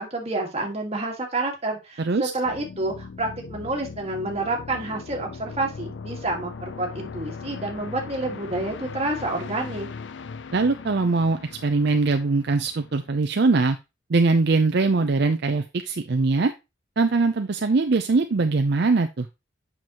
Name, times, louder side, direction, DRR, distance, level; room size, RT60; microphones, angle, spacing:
voice 1, 0.0-9.9, right 2 dB, 30° right, 1 dB, 1.8 m, -29 dB
voice 2, 2.0-2.3 10.5-13.8 14.1-16.5 17.0-19.3, right 3 dB, 55° right, 7 dB, 0.5 m, -22 dB
sound 1, 2.4-13.2, left 5 dB, 70° left, 0.5 m, -39 dB
7.6 x 6.0 x 2.9 m, 0.25 s
head